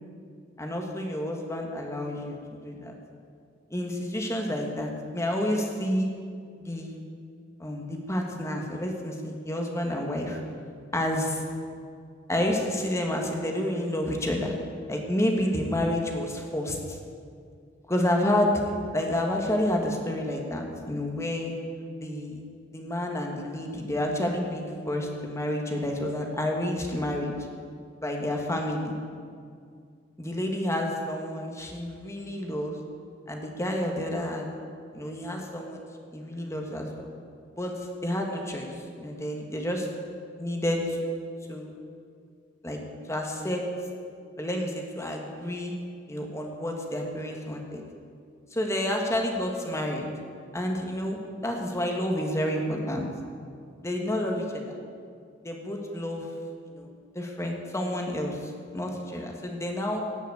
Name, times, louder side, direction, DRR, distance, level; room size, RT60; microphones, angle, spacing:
voice 1, 0.6-2.9 3.7-6.1 6.6-7.0 7.6-10.4 10.9-11.4 12.3-14.5 14.9-17.0 17.9-21.5 22.0-22.4 22.7-27.3 28.0-28.9 30.2-32.8 33.3-34.5 34.9-35.8 36.1-36.9 37.5-39.9 40.4-41.1 41.5-41.7 42.6-42.8 43.1-43.6 44.4-45.7 46.1-47.8 48.5-50.1 50.5-53.0 53.8-54.6 55.4-56.3 56.7-56.9 57.1-60.0, left 1 dB, 15° left, 1 dB, 1.7 m, -29 dB
17.0 x 6.4 x 8.2 m, 2.2 s
head